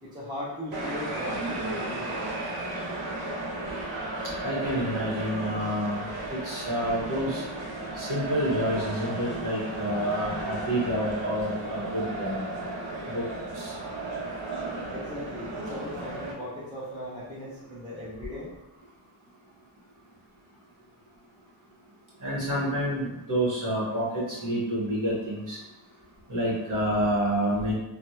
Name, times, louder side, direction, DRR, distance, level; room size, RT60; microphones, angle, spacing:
voice 1, 0.0-2.4 10.6-10.7 14.9-18.5, left 1 dB, 10° right, -9 dB, 0.9 m, -38 dB
sound 1, 0.7-16.3, right 2 dB, 75° right, 0.8 m, -34 dB
voice 2, 4.4-6.0 6.3-7.4 7.9-12.4 13.1-13.2 13.5-13.7 22.2-25.6 26.3-27.7, equal, 45° right, -7 dB, 1.5 m, -28 dB
3.2 x 2.3 x 2.8 m, 0.96 s
cardioid pair, 75°, 45 cm